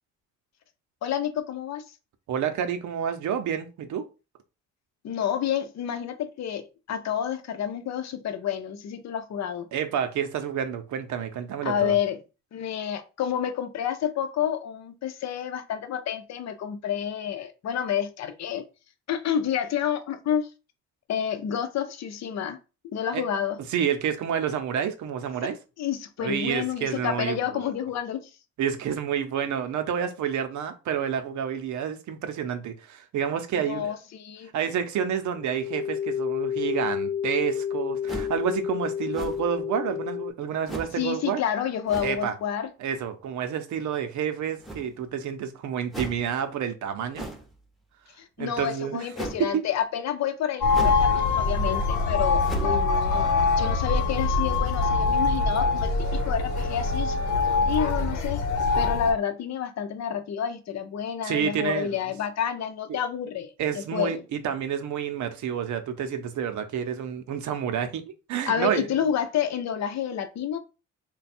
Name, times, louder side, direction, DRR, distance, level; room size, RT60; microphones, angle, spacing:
voice 1, 1.0-1.8 5.0-9.7 11.6-12.2 12.5-18.6 19.1-20.5 21.1-22.6 22.9-23.6 25.8-28.3 33.6-34.5 41.0-42.7 48.2-53.3 53.6-58.4 58.8-64.2 68.5-70.6, left 9 dB, 60° left, 0.7 m, -29 dB
voice 2, 2.3-4.0 9.7-12.0 23.1-23.2 23.7-25.6 26.2-27.6 28.6-33.9 34.5-41.4 42.0-42.3 42.8-47.3 48.4-49.1 49.4-49.7 61.2-61.9 63.6-68.9, right 8 dB, 70° right, 0.7 m, -29 dB
sound 1, 35.4-40.3, left 8 dB, 15° left, 0.4 m, -30 dB
sound 2, 38.1-38.4 39.1-39.6 40.7-41.0 41.9-42.2 44.6-45.1 45.9-46.3 47.1-47.5 49.1-49.5 50.7-51.1 51.4-51.5 52.5-52.8, right 2 dB, ahead, 0.8 m, -36 dB
sound 3, 50.6-59.1, left 4 dB, 85° left, 1.0 m, -24 dB
3.3 x 2.3 x 4.2 m
cardioid pair, 90°, 30 cm